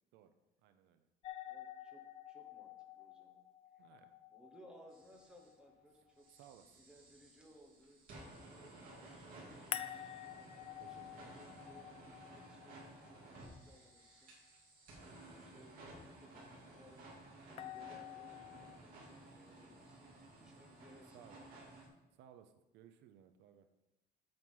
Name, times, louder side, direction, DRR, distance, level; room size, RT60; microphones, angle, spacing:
voice 1, 0.6-1.0 3.8-4.1 6.3-6.8 10.8-11.3 21.1-21.3 22.1-23.7, right 10 dB, 80° right, 9 dB, 0.8 m, -61 dB
sound 1, 1.2-6.2 9.7-13.8 17.6-18.8, left 11 dB, 35° left, 0.4 m, -49 dB
voice 2, 1.4-3.4 3.7-3.9 4.3-6.3 6.6-10.5 10.8-12.8 13.0-14.3 15.0-17.1 17.4-20.1 20.3-21.5, equal, 5° right, 1 dB, 1.1 m, -63 dB
sound 2, 4.9-5.5 6.2-21.9, right 2 dB, 50° right, 2.6 m, -56 dB
7.8 x 6.1 x 5.5 m, 0.97 s
cardioid pair, 170°, 18 cm